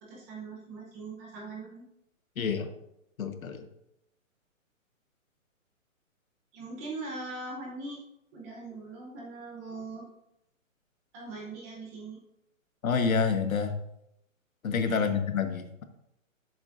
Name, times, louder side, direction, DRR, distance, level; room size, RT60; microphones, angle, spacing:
voice 1, 0.0-1.9 6.5-8.0 8.3-10.1 11.1-12.2 14.8-15.1, right 3 dB, 10° right, -2 dB, 0.7 m, -41 dB
voice 2, 2.4-2.7 3.2-3.7 12.8-13.7 14.6-15.8, left 5 dB, 85° left, 8 dB, 1.2 m, -28 dB
12.0 x 7.2 x 2.5 m, 0.82 s
hypercardioid pair, 160°, 41 cm